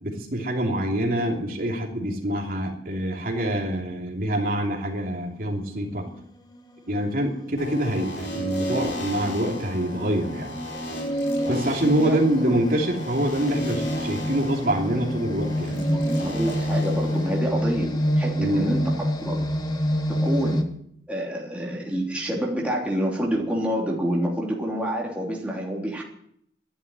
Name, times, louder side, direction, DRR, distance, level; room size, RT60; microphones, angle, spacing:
voice 1, 0.0-6.1 6.9-10.5 11.5-15.8 18.4-18.7, right 1 dB, 55° right, 0 dB, 3.0 m, -25 dB
sound 1, 6.0-6.3 6.9-20.6, equal, 25° left, 1.5 m, -28 dB
sound 2, 7.6-17.4, equal, 85° left, 4.3 m, -33 dB
voice 2, 12.0-12.5 15.7-19.5 20.1-20.7 21.1-26.0, equal, 5° right, -2 dB, 3.1 m, -28 dB
12.5 x 11.0 x 9.7 m, 0.70 s
head